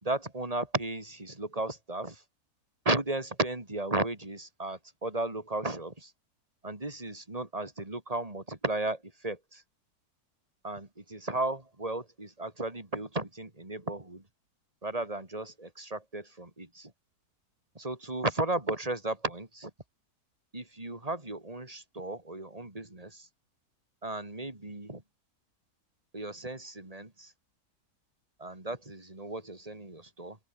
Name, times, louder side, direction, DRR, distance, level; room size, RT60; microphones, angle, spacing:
voice 1, 0.0-2.2 2.9-6.1 6.6-9.6 10.6-14.2 14.8-16.9 17.8-19.7 20.5-23.3 24.0-25.0 26.1-27.3 28.4-30.4, right 2 dB, 20° right, 3.7 m, -35 dB
open air
omnidirectional pair, 1.6 m